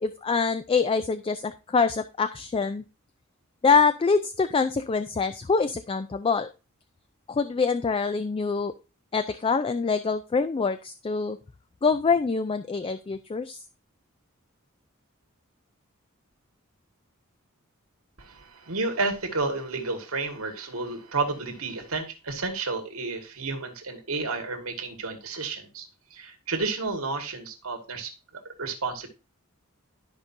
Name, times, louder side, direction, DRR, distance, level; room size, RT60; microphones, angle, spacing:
voice 1, 0.0-2.8 3.6-6.5 7.3-8.7 9.1-11.4 11.8-13.6, left 5 dB, 25° left, 11 dB, 0.3 m, -25 dB
voice 2, 18.2-28.1 28.5-29.1, right 3 dB, 90° right, 5 dB, 1.8 m, -31 dB
12.5 x 5.2 x 2.7 m, 0.29 s
head